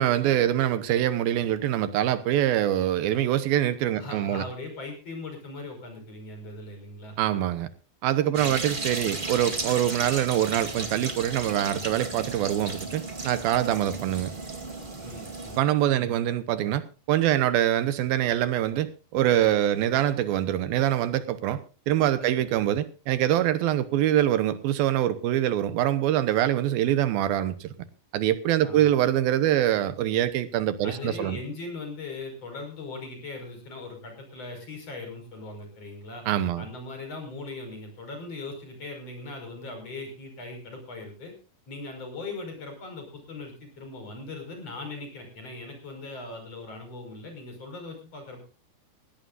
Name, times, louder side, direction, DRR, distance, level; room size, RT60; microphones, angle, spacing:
voice 1, 0.0-4.4 7.2-7.7 8.0-14.3 15.6-21.6 21.9-27.7 28.1-31.4 36.3-36.7, right 12 dB, 80° right, 2.8 m, -24 dB
voice 2, 4.0-7.1 8.3-8.5 15.0-15.6 15.9-16.1 22.2-22.4 28.6-29.0 30.8-36.2 36.6-41.3 41.7-48.4, left 3 dB, 40° left, 6.4 m, -39 dB
sound 1, 8.3-15.6, right 3 dB, 20° right, 1.4 m, -34 dB
19.5 x 17.0 x 2.6 m
omnidirectional pair, 4.2 m